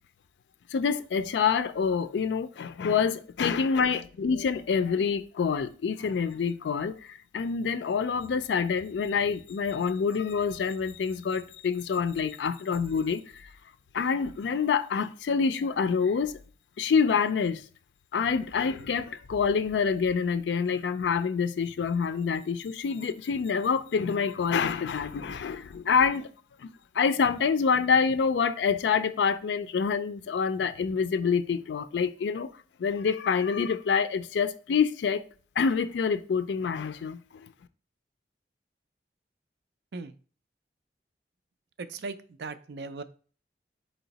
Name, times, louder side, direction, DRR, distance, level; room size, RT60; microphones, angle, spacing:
voice 1, 0.7-13.5 13.9-16.3 16.8-17.6 18.1-26.3 26.6-26.7 26.9-32.5 32.8-35.2 35.6-37.5, left 6 dB, 85° left, 0.4 m, -27 dB
voice 2, 41.8-43.0, right 3 dB, 70° right, 0.4 m, -38 dB
4.3 x 2.9 x 3.9 m
head